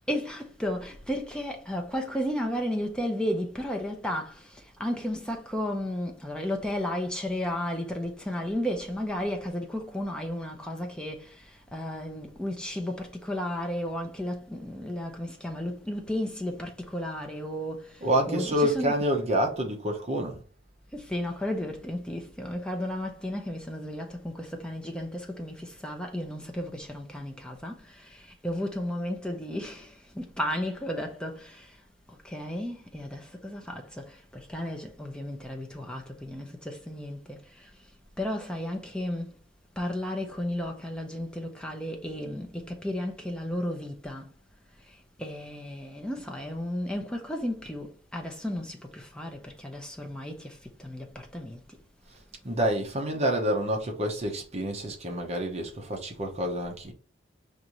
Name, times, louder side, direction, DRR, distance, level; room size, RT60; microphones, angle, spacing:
voice 1, 0.1-19.0 20.9-31.7 32.2-37.7 38.2-39.3 39.8-44.3 45.2-51.6, left 1 dB, 5° left, 0.5 m, -33 dB
voice 2, 18.0-20.4 52.4-56.9, equal, 30° right, 0.8 m, -28 dB
5.1 x 2.6 x 3.0 m
head